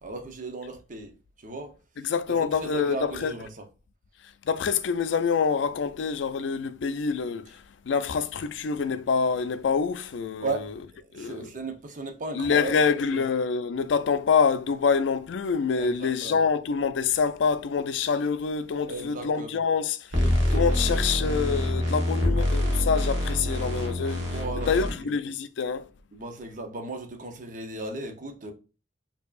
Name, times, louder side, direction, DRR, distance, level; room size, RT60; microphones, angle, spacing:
voice 1, 0.0-1.7 2.6-3.6 10.4-12.7 13.1-13.2 15.8-16.4 18.9-19.6 20.2-20.8 24.2-25.2 26.1-28.5, right 2 dB, 45° right, 0.7 m, -36 dB
voice 2, 2.0-3.3 4.4-10.5 11.1-11.5 12.3-20.2 20.5-24.3 24.7-25.9, left 5 dB, 75° left, 0.4 m, -26 dB
sound 1, 20.1-24.9, left 1 dB, 70° right, 1.1 m, -25 dB
4.5 x 2.8 x 2.4 m
head